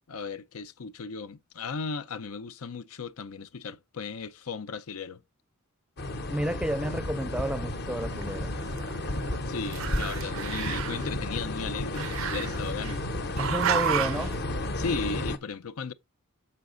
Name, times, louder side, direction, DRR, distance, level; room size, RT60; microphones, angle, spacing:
voice 1, 0.1-5.2 9.4-13.1 14.7-15.9, left 4 dB, 90° left, 0.6 m, -36 dB
sound 1, 6.0-15.4, left 1 dB, 50° left, 0.8 m, -33 dB
voice 2, 6.3-8.5 13.4-14.3, right 1 dB, 5° right, 0.5 m, -31 dB
Growling, 8.1-9.4 9.7-11.1 11.9-12.9 13.4-14.3, right 8 dB, 65° right, 0.5 m, -31 dB
6.9 x 5.8 x 3.8 m
head